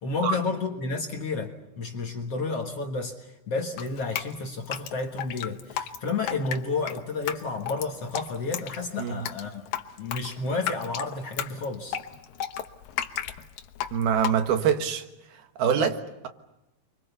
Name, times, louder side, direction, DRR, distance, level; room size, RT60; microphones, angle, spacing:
voice 1, 0.0-3.2 3.5-9.6 10.0-12.0 15.8-15.9, left 3 dB, 50° left, 2.1 m, -31 dB
Drip, 3.8-14.8, left 10 dB, 70° left, 2.6 m, -34 dB
voice 2, 13.9-15.1 15.6-16.0, right 8 dB, 80° right, 3.4 m, -24 dB
29.5 x 24.5 x 6.9 m
omnidirectional pair, 4.4 m